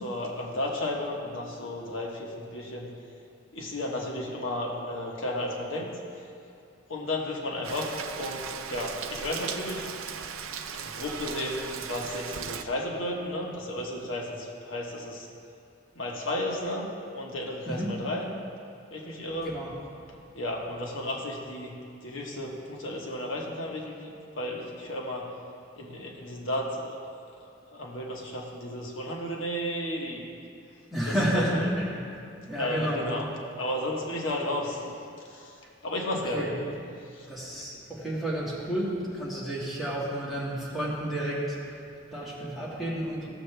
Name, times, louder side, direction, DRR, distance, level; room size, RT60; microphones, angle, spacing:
voice 1, 0.0-2.9 3.5-6.3 6.9-9.9 10.8-15.3 15.9-16.9 17.1-18.3 18.9-19.5 20.3-21.7 22.0-25.3 25.8-27.0 27.3-30.3 31.0-31.7 32.5-33.3 33.6-34.9 35.2-36.5 37.0-37.3, left 1 dB, 75° left, -1 dB, 1.2 m, -33 dB
Rain, 7.6-12.6, right 6 dB, 90° right, 0.5 m, -37 dB
voice 2, 19.4-19.7 30.9-32.0 32.5-33.1 36.3-36.6 37.3-43.3, right 1 dB, ahead, -8 dB, 1.7 m, -31 dB
15.5 x 6.9 x 3.3 m, 2.6 s
head